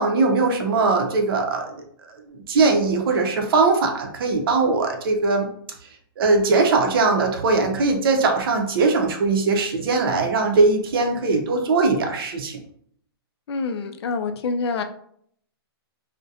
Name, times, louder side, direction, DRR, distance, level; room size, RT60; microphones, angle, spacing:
voice 1, 0.0-1.8 2.3-5.5 6.2-12.6, right 3 dB, 60° right, 3 dB, 0.6 m, -20 dB
voice 2, 13.5-14.8, left 4 dB, 80° left, 8 dB, 0.4 m, -26 dB
2.4 x 2.1 x 2.7 m, 0.65 s
hypercardioid pair, 160°, 13 cm